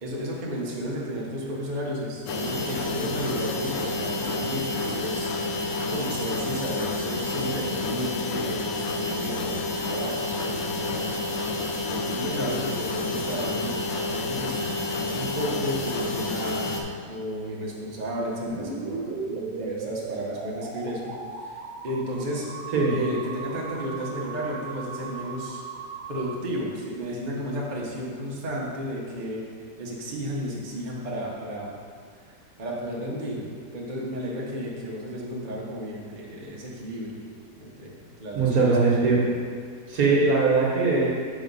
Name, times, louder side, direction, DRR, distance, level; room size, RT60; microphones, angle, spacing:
voice 1, 0.0-5.3 5.9-10.5 10.8-10.9 12.1-21.1 21.4-22.5 22.9-25.6 26.1-29.4 29.8-31.7 32.1-32.3 32.6-33.4 33.7-37.2 37.6-38.8 39.0-39.2, equal, 30° right, -5 dB, 0.9 m, -33 dB
sound 1, 2.3-16.8, left 2 dB, 85° left, 1.4 m, -29 dB
sound 2, 18.5-26.4, right 4 dB, 80° right, 1.3 m, -36 dB
voice 2, 38.3-39.3 39.9-41.1, right 4 dB, 60° right, -4 dB, 1.6 m, -21 dB
6.1 x 4.2 x 5.4 m, 2.1 s
omnidirectional pair, 1.9 m